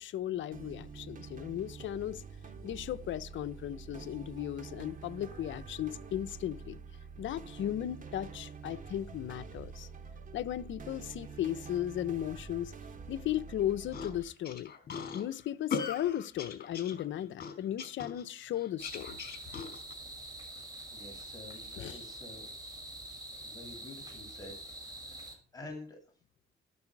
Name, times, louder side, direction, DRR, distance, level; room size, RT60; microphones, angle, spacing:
voice 1, 0.0-2.2 2.6-6.8 7.2-9.9 10.3-12.7 13.1-14.7 15.1-19.2 19.5-19.6 21.7-22.0, left 11 dB, 75° left, 0.9 m, -36 dB
sound 1, 0.5-14.2, right 5 dB, 40° right, 3.3 m, -47 dB
sound 2, 13.9-19.9, left 6 dB, 50° left, 4.6 m, -39 dB
sound 3, 18.8-25.3, right 1 dB, 20° right, 7.3 m, -46 dB
voice 2, 20.9-22.5 23.4-24.6 24.8-26.0, left 2 dB, 20° left, 7.4 m, -49 dB
14.0 x 13.0 x 4.8 m
cardioid pair, 90°, 20 cm